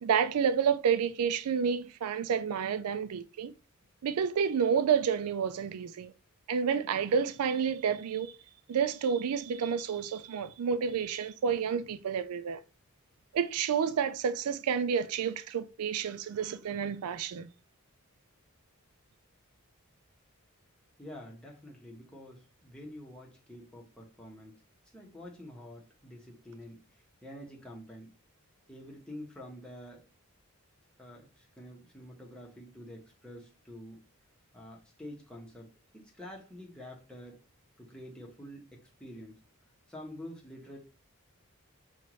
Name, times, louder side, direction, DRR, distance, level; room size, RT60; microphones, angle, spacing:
voice 1, 0.0-3.5 4.0-6.1 6.5-8.3 8.7-12.6 13.3-17.5, right 7 dB, 90° right, 0.4 m, -29 dB
voice 2, 21.0-24.6 24.9-26.8 27.2-28.1 28.7-30.1 31.0-34.0 34.5-37.4 37.8-39.4 39.9-40.8, left 1 dB, 5° left, 1.2 m, -47 dB
5.6 x 2.6 x 3.1 m
head